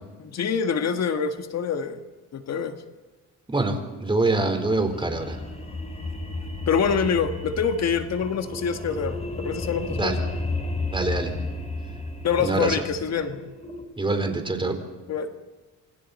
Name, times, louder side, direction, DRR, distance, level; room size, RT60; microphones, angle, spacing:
voice 1, 0.2-2.0 2.3-2.8 6.7-10.2 12.2-13.4 15.1-15.3, left 6 dB, 60° left, 6 dB, 1.7 m, -25 dB
voice 2, 3.5-5.4 9.9-10.2 10.9-11.3 12.4-12.8 14.0-14.8, right 2 dB, 15° right, 5 dB, 4.3 m, -25 dB
sound 1, 4.6-13.8, left 2 dB, 20° left, 4.3 m, -33 dB
28.0 x 26.5 x 4.3 m, 1.3 s
cardioid pair, 90°, 30 cm